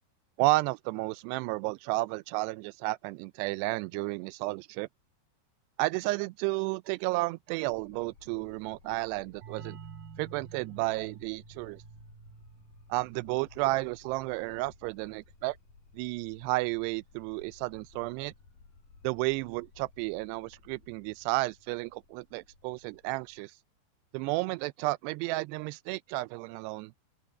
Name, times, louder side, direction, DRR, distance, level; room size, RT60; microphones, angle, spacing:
voice 1, 0.4-4.9 5.8-9.8 10.2-11.8 12.9-15.6 15.9-18.3 19.0-23.5 24.1-26.9, right 21 dB, 90° right, 2.7 m, -32 dB
sound 1, 7.7-23.4, left 4 dB, 55° left, 8.5 m, -58 dB
sound 2, 9.4-14.9, right 7 dB, 60° right, 4.2 m, -50 dB
open air
omnidirectional pair, 4.7 m